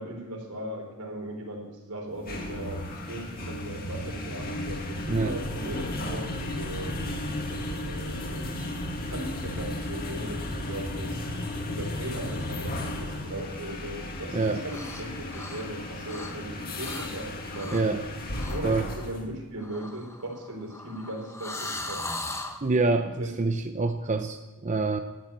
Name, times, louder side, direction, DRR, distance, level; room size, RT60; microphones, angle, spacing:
voice 1, 0.0-7.0 7.5-8.8 9.1-11.2 11.7-17.8 18.5-22.1 23.2-23.3, right 1 dB, 85° right, 2 dB, 3.7 m, -38 dB
sound 1, 2.1-19.3, left 1 dB, 40° left, 1.8 m, -34 dB
sound 2, 14.6-15.0 15.3-16.5 16.8-17.1 17.5-17.9 18.4-18.6 19.6-22.6, left 2 dB, 10° left, 1.1 m, -38 dB
voice 2, 17.7-18.0 18.6-18.9 22.6-25.0, right 3 dB, 35° right, 7 dB, 0.6 m, -26 dB
12.0 x 8.8 x 8.7 m, 1.1 s
head